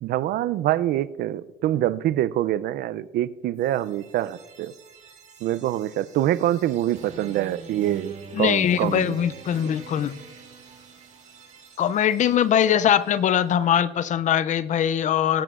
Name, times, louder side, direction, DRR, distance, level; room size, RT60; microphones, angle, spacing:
voice 1, 0.0-4.7 5.4-9.1, right 13 dB, 70° right, 18 dB, 0.4 m, -25 dB
sound 1, 3.5-13.5, right 5 dB, 45° right, 1.9 m, -45 dB
voice 2, 8.3-10.2 11.8-15.4, left 9 dB, 45° left, 17 dB, 0.4 m, -22 dB
20.0 x 8.8 x 2.5 m, 1.2 s
cardioid pair, 110°, 17 cm